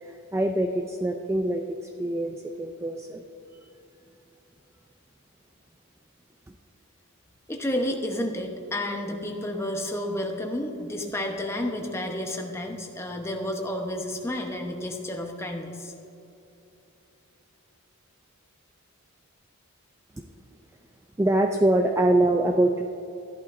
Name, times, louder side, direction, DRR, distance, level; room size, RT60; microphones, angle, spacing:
voice 1, 0.0-3.2 21.2-22.8, right 1 dB, 10° right, 3 dB, 0.3 m, -24 dB
voice 2, 7.5-15.9, left 1 dB, 10° left, 2 dB, 0.9 m, -31 dB
14.0 x 11.5 x 2.6 m, 2.9 s
head